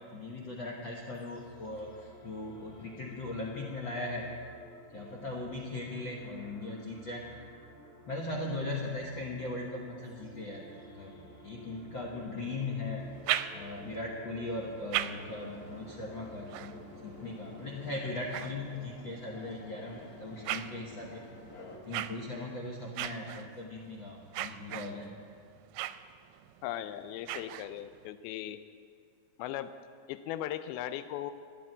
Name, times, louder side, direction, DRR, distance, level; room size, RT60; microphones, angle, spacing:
voice 1, 0.1-4.3 4.9-7.3 8.1-11.1 11.4-13.0 13.5-16.7 17.0-21.2 21.8-25.1, left 2 dB, 65° left, -1 dB, 1.1 m, -39 dB
sound 1, 1.1-18.9, left 1 dB, 20° left, 2.3 m, -53 dB
sound 2, 13.0-14.0 14.6-19.2 19.8-28.1, right 13 dB, 80° right, 2.2 m, -40 dB
sound 3, 15.0-21.8, left 3 dB, 45° left, 1.1 m, -51 dB
voice 2, 26.6-28.6 29.4-29.7 30.1-31.3, left 12 dB, 90° left, 10 dB, 2.5 m, -38 dB
13.5 x 9.7 x 9.0 m, 2.2 s
omnidirectional pair, 4.3 m